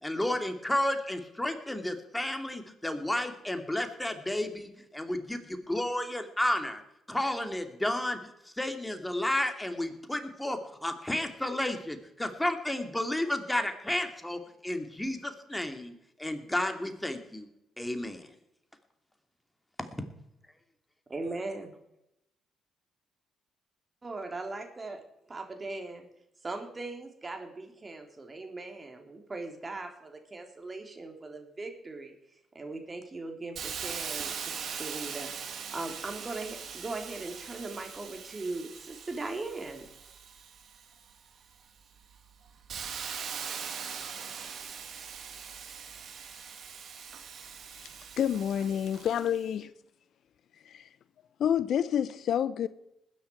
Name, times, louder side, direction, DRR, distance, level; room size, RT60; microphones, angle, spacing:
voice 1, 0.0-6.8 7.1-8.2 8.6-17.5 17.8-18.3 19.8-19.9, left 1 dB, 10° left, 2.7 m, -32 dB
voice 2, 21.1-21.8 24.0-25.0 25.3-26.0 26.4-32.1 32.5-39.9, right 3 dB, 30° right, 3.5 m, -39 dB
Hiss, 33.6-41.1 41.6-49.4, right 6 dB, 60° right, 2.3 m, -41 dB
voice 3, 48.2-49.7 50.6-50.9 51.4-52.7, left 9 dB, 65° left, 0.6 m, -28 dB
20.0 x 10.0 x 4.7 m
hypercardioid pair, 45°, 0 cm